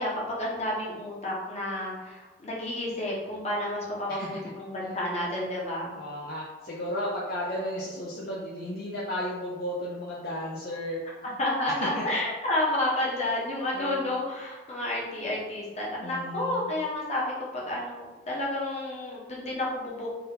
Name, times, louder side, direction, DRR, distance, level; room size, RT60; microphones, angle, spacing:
voice 1, 0.0-6.0 11.4-20.1, left 1 dB, 35° left, -5 dB, 1.1 m, -30 dB
voice 2, 6.0-11.0 11.9-12.0 13.7-14.1 16.0-16.7, left 1 dB, 55° left, -5 dB, 0.6 m, -34 dB
3.9 x 2.6 x 4.0 m, 1.2 s
head